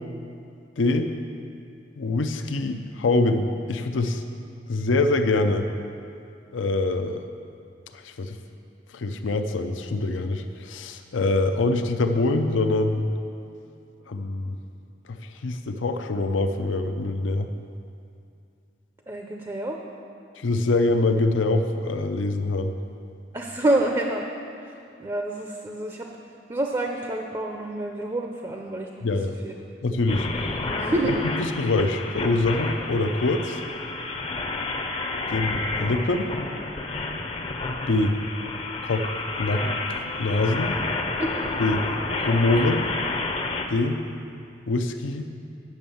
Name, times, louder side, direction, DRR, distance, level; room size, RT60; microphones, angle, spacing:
voice 1, 0.8-1.1 2.0-4.2 4.7-5.7 6.5-7.2 7.9-8.4 8.9-13.1 14.1-14.6 15.1-17.5 20.4-22.7 29.0-29.4 29.8-30.3 31.0-33.6 35.3-36.3 37.9-38.2 38.8-39.1 39.4-40.8 41.6-41.9 42.2-42.9 43.7-44.1 44.7-45.3, left 2 dB, 85° left, 7 dB, 0.5 m, -24 dB
voice 2, 19.1-19.8 23.3-24.2 25.0-26.1 26.5-29.1 29.4-29.5 30.7-31.1 41.2-41.4, right 1 dB, 20° right, 2 dB, 0.5 m, -27 dB
sound 1, 30.1-43.7, left 3 dB, 30° left, 0.6 m, -30 dB
9.3 x 6.3 x 7.0 m, 2.5 s
head